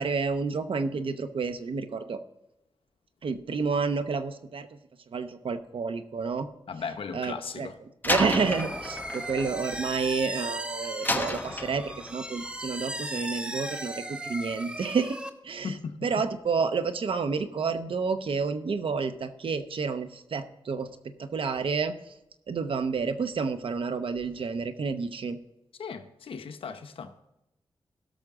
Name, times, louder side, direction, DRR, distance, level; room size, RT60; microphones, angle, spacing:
voice 1, 0.0-2.2 3.2-4.7 5.1-6.5 7.1-7.7 8.0-15.2 15.4-15.7 16.0-21.9 22.5-25.4, right 5 dB, 75° right, 0.9 m, -30 dB
voice 2, 6.7-7.8 15.6-16.2 25.8-27.1, left 5 dB, 85° left, 0.9 m, -37 dB
Slam, 8.0-10.5 11.0-12.3, left 2 dB, 20° left, 0.9 m, -32 dB
sound 1, 8.2-15.3, right 1 dB, 10° right, 1.0 m, -37 dB
16.5 x 6.5 x 3.7 m
wide cardioid pair, 75°, 9 cm